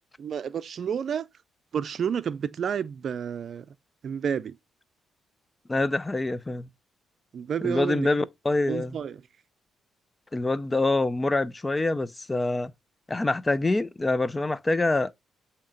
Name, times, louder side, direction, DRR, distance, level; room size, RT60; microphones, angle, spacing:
voice 1, 0.2-1.3 1.7-3.7 4.0-4.6 7.3-8.1 8.7-9.2, right 7 dB, 55° right, 0.5 m, -30 dB
voice 2, 5.7-6.7 7.6-9.0 10.3-12.7 13.1-15.1, left 2 dB, 20° left, 0.4 m, -25 dB
8.3 x 2.8 x 5.1 m
cardioid pair, 90°, 0 cm